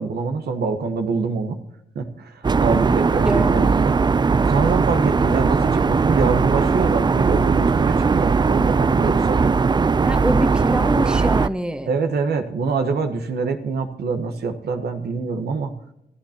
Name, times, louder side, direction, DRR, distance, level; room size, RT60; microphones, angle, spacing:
voice 1, 0.0-1.6 1.9-4.0 4.5-9.6 11.9-15.7, right 4 dB, 90° right, 7 dB, 1.3 m, -25 dB
sound 1, 2.4-11.5, right 4 dB, 25° right, 0.4 m, -19 dB
voice 2, 3.2-3.7 10.0-11.9, right 1 dB, 5° right, 10 dB, 1.2 m, -25 dB
25.5 x 12.0 x 2.9 m, 0.83 s
cardioid pair, 65°, 16 cm